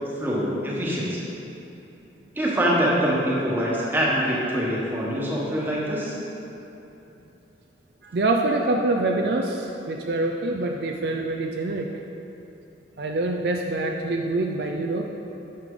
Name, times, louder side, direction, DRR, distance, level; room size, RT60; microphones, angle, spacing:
voice 1, 0.2-1.2 2.3-6.1, equal, 10° right, -5 dB, 1.2 m, -24 dB
voice 2, 8.0-11.9 13.0-15.1, right 2 dB, 55° right, 2 dB, 0.4 m, -25 dB
9.2 x 6.6 x 3.8 m, 2.9 s
head